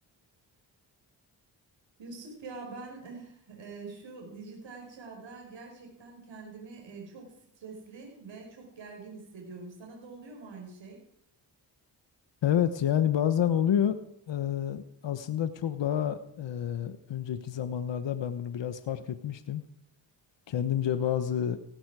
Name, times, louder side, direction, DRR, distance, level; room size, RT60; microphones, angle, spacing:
voice 1, 2.0-11.0, right 4 dB, 80° right, 1 dB, 5.0 m, -45 dB
voice 2, 12.4-14.0 14.3-19.6 20.5-21.6, left 9 dB, 75° left, 10 dB, 1.1 m, -29 dB
17.5 x 15.5 x 4.8 m, 0.74 s
cardioid pair, 65°, 44 cm